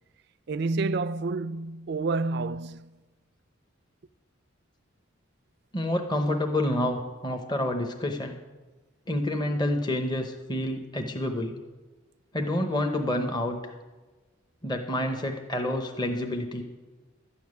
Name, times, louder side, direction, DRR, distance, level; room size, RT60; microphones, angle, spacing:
voice 1, 0.5-2.9, right 3 dB, 55° right, 0.4 m, -29 dB
voice 2, 5.7-8.4 9.1-11.6 12.3-13.6 14.6-16.6, left 1 dB, 20° left, 0.9 m, -28 dB
12.5 x 7.1 x 9.5 m
head